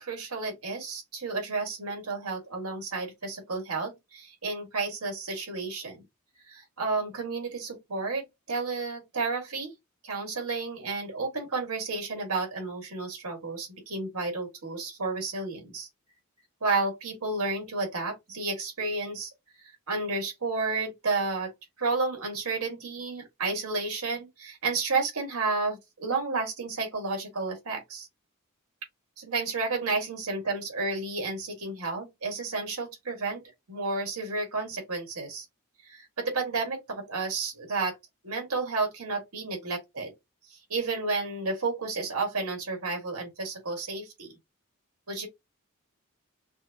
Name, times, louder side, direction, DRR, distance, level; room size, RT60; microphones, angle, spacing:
voice 1, 0.0-6.0 6.5-9.7 10.0-15.9 16.6-19.3 19.9-21.5 21.8-28.1 29.2-33.4 33.7-35.5 35.8-38.0 38.2-40.1 40.5-44.3 45.1-45.3, right 3 dB, 85° right, 1.7 m, -31 dB
6.2 x 2.1 x 2.3 m
head